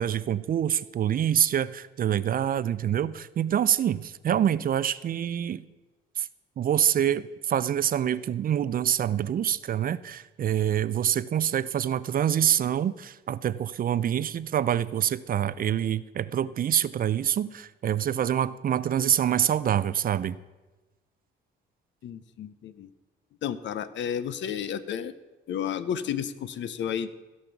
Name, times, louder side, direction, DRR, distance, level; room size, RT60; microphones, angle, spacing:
voice 1, 0.0-5.6 6.2-6.3 6.6-20.4, right 10 dB, 45° right, 17 dB, 0.4 m, -26 dB
voice 2, 22.0-22.9 23.4-25.1 25.5-27.1, left 8 dB, 65° left, 14 dB, 0.7 m, -32 dB
15.5 x 5.5 x 5.9 m, 1.2 s
cardioid pair, 90°, 20 cm